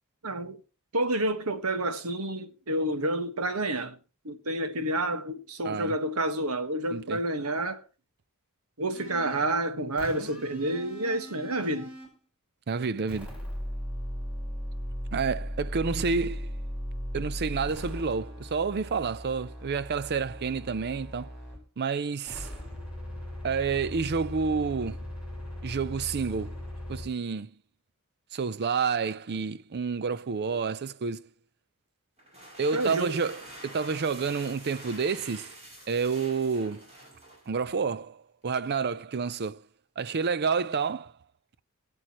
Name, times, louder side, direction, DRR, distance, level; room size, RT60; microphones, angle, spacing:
voice 1, 0.2-0.6 0.9-4.0 4.2-7.8 8.8-11.9 32.7-33.2, right 1 dB, 80° right, 1.5 m, -29 dB
voice 2, 5.6-6.0 6.9-7.2 12.7-13.3 15.1-16.5 17.1-21.3 21.8-22.5 23.4-25.0 25.6-26.5 26.9-27.5 28.3-31.2 32.6-35.5 35.9-36.9 37.5-39.6 40.0-41.1, right 5 dB, 50° right, 0.5 m, -29 dB
sound 1, 8.9-9.5 10.0-12.2 13.1-21.7 22.3-27.1, equal, 5° right, 5.5 m, -38 dB
sound 2, 32.2-37.8, right 1 dB, 30° right, 6.1 m, -47 dB
22.0 x 7.7 x 3.0 m
head